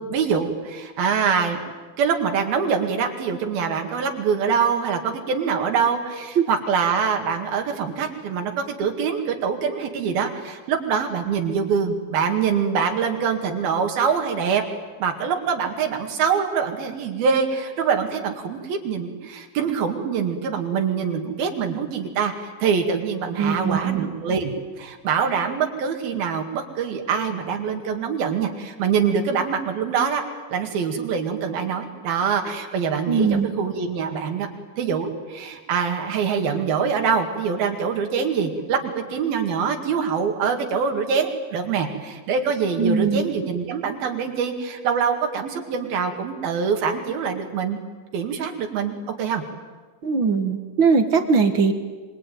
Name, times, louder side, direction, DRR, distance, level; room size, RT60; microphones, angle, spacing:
voice 1, 0.1-1.6 2.0-14.6 15.0-24.5 24.8-34.5 34.8-47.8 48.1-49.4, right 6 dB, 80° right, 4 dB, 4.0 m, -24 dB
voice 2, 23.4-24.1 33.1-33.5 42.8-43.2 50.0-51.7, right 5 dB, 50° right, 7 dB, 1.6 m, -20 dB
26.0 x 24.0 x 9.3 m, 1.3 s
omnidirectional pair, 4.2 m